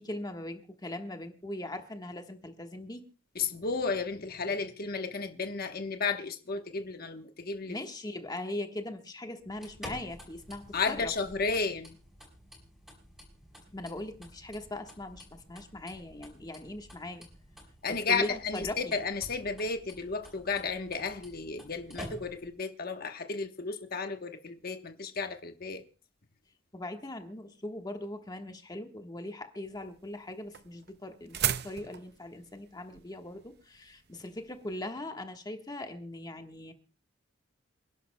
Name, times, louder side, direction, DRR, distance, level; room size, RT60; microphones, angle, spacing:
voice 1, 0.0-3.0 7.7-11.1 13.7-17.3 17.9-18.9 26.7-36.7, left 1 dB, 20° left, 1.3 m, -40 dB
voice 2, 3.3-7.8 10.7-12.0 17.8-25.8, left 4 dB, 50° left, 1.1 m, -33 dB
sound 1, 9.4-22.6, equal, ahead, 5.6 m, -50 dB
sound 2, 29.7-34.9, right 11 dB, 60° right, 0.6 m, -37 dB
28.5 x 11.0 x 2.2 m
head